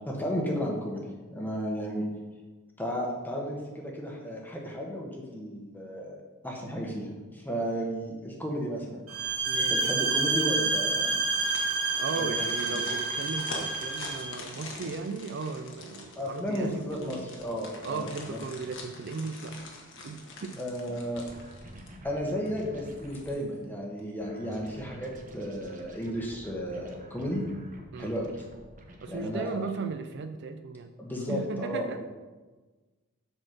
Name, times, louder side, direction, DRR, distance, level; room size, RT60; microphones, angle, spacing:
voice 1, 0.1-1.0 1.3-2.1 2.8-6.2 6.4-9.0 9.7-11.1 12.1-12.8 16.2-18.4 20.6-21.2 22.0-27.4 28.0-28.3 29.1-29.6 31.0-32.0, equal, 10° left, -1 dB, 1.2 m, -33 dB
sound 1, 9.1-14.3, right 4 dB, 85° right, 1.3 m, -28 dB
voice 2, 9.5-9.8 12.0-17.2 17.8-19.6 20.0-20.6 27.9-28.1 29.0-30.9 31.3-32.0, right 4 dB, 50° right, 8 dB, 0.4 m, -36 dB
sound 2, 11.2-22.1 22.5-22.6 23.0-23.6 24.0-24.1, left 3 dB, 55° left, 1.3 m, -45 dB
sound 3, 21.1-23.3 24.2-29.1, right 1 dB, 35° right, 0.9 m, -48 dB
7.9 x 4.2 x 5.9 m, 1.3 s
head